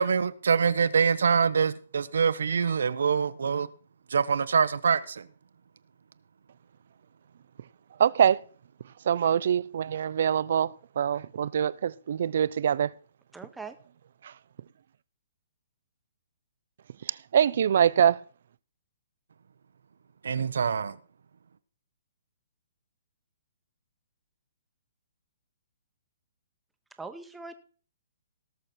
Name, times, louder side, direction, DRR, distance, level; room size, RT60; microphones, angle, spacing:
voice 1, 0.0-3.7 4.1-5.3 20.2-21.0, right 6 dB, 80° right, 0.9 m, -25 dB
voice 2, 8.0-8.4 9.1-12.9 17.3-18.2, right 8 dB, 60° right, 0.5 m, -24 dB
voice 3, 13.3-13.8 27.0-27.5, right 4 dB, 5° right, 1.0 m, -41 dB
18.0 x 6.6 x 4.4 m
hypercardioid pair, 155°, 0 cm